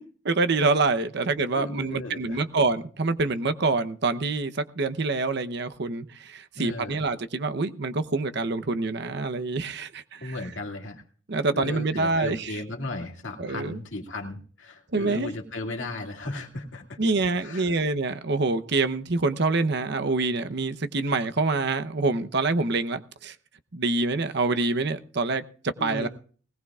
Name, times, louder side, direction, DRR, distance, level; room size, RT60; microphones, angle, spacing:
voice 1, 0.2-10.3 11.3-12.5 13.4-13.8 14.9-15.3 17.0-23.3 23.7-26.1, right 3 dB, 60° right, 0.9 m, -26 dB
voice 2, 1.6-2.4 6.6-7.0 10.2-11.0 11.5-17.0 17.4-17.8 25.8-26.1, left 2 dB, 70° left, 2.3 m, -36 dB
20.0 x 18.0 x 2.4 m
head